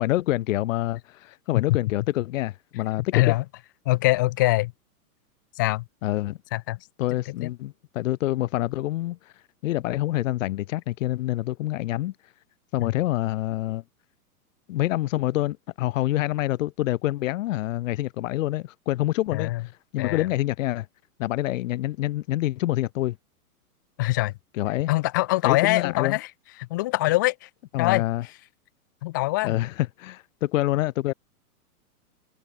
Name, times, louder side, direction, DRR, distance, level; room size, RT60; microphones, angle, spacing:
voice 1, 0.0-3.4 6.0-6.4 7.0-9.3 9.6-12.1 12.7-13.8 14.7-19.5 19.9-20.9 21.2-23.2 24.6-24.9 25.4-26.2 27.7-28.2 29.4-31.1, left 15 dB, 55° left, 2.5 m, -26 dB
voice 2, 3.1-3.4 3.9-4.7 5.6-5.9 6.5-6.8 7.3-7.5 12.8-12.9 19.3-19.6 20.0-20.3 24.0-24.4 24.9-26.3 26.6-27.5 27.8-28.0 29.0-29.6, left 19 dB, 15° left, 0.3 m, -23 dB
hypercardioid pair, 130°, 45 cm